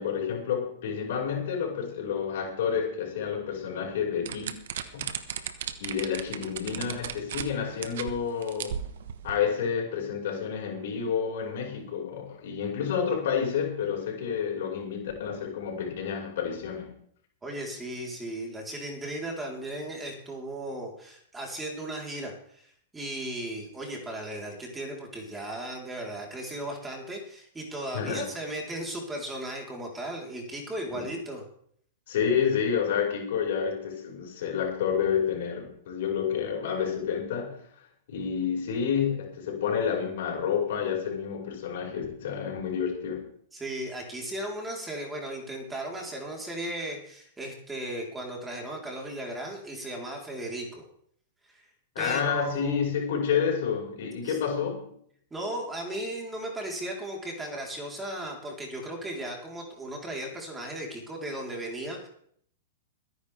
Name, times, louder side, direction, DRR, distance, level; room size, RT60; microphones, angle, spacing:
voice 1, 0.0-4.5 4.9-5.1 5.8-8.9 9.2-17.0 27.9-28.3 30.9-31.1 32.1-37.6 38.1-43.3 52.0-54.9, left 7 dB, 65° left, 0 dB, 5.4 m, -29 dB
sound 1, 4.3-7.5 7.8-8.1 8.4-9.4, right 9 dB, 70° right, 1.4 m, -35 dB
voice 2, 17.4-31.4 43.5-50.8 51.5-51.6 52.0-52.8 54.2-54.4 55.3-62.1, right 1 dB, 10° right, -1 dB, 3.9 m, -36 dB
22.5 x 10.5 x 3.5 m, 0.65 s
hypercardioid pair, 125°, 0 cm